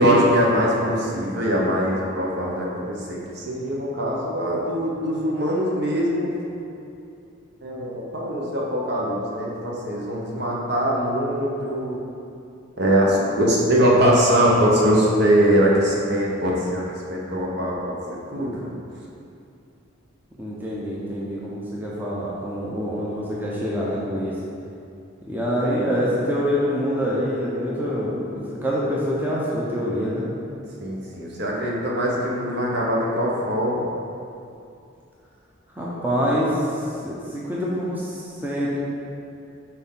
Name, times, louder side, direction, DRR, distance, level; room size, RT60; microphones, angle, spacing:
voice 1, 0.0-6.3 7.6-12.0 12.8-17.9 18.3-18.7 30.8-33.8, equal, 50° right, -3 dB, 1.0 m, -22 dB
voice 2, 20.4-24.4 25.3-30.3 35.7-38.8, equal, 10° right, -7 dB, 0.7 m, -25 dB
4.4 x 4.3 x 5.4 m, 2.6 s
head